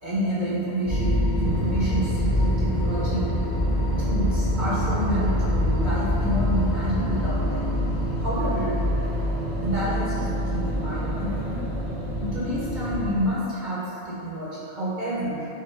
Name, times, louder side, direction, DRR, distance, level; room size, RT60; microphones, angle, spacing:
voice 1, 0.0-3.4 4.0-7.7 8.2-8.8 9.6-11.6 12.2-15.5, equal, 50° right, -8 dB, 0.9 m, -29 dB
sound 1, 0.9-13.1, equal, 75° left, 1.1 m, -25 dB
sound 2, 1.4-13.4, equal, 85° right, 1.2 m, -39 dB
5.0 x 2.0 x 4.4 m, 2.9 s
omnidirectional pair, 1.0 m